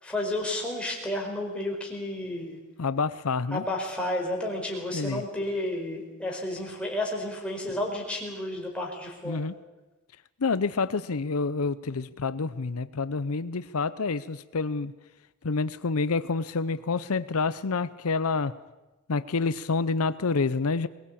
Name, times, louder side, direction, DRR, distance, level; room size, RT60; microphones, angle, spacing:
voice 1, 0.0-2.6 3.5-9.5, left 1 dB, 5° left, -1 dB, 4.7 m, -31 dB
voice 2, 2.8-3.6 4.9-5.2 9.2-9.5 10.4-14.9 15.4-18.5 19.1-20.9, left 4 dB, 80° left, 15 dB, 0.7 m, -28 dB
22.0 x 19.5 x 8.6 m, 1.1 s
head